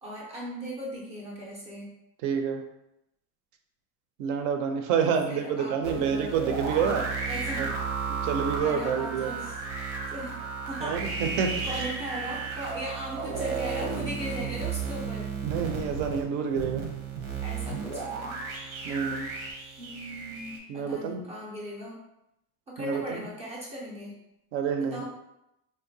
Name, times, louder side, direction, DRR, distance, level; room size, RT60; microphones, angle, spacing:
voice 1, 0.0-1.9 5.0-6.4 6.7-7.8 8.6-9.6 10.1-11.0 11.6-15.3 17.4-18.4 19.8-22.0 22.7-24.2 24.9-25.0, equal, 15° right, -4 dB, 0.4 m, -38 dB
voice 2, 2.2-2.6 4.2-7.0 7.6-7.7 8.1-9.3 10.8-11.9 15.4-16.9 18.8-19.3 20.7-21.2 22.8-23.2 24.5-25.0, right 6 dB, 65° right, 5 dB, 0.5 m, -28 dB
sound 1, 5.8-20.6, right 5 dB, 90° right, 0.9 m, -33 dB
3.7 x 2.1 x 2.6 m, 0.86 s
cardioid pair, 160°, 44 cm